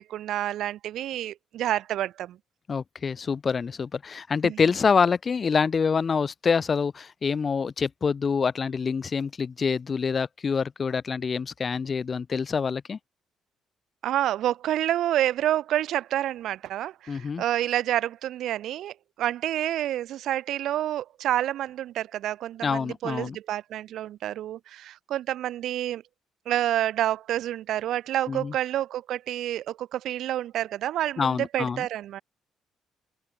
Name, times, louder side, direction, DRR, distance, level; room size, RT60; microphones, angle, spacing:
voice 1, 0.0-2.4 4.4-4.6 14.0-26.0 26.5-32.2, right 12 dB, 80° right, 2.1 m, -28 dB
voice 2, 2.7-13.0 17.1-17.4 22.6-23.4 28.3-28.5 31.2-31.9, left 5 dB, 40° left, 0.3 m, -26 dB
open air
cardioid pair, 90°, 0 cm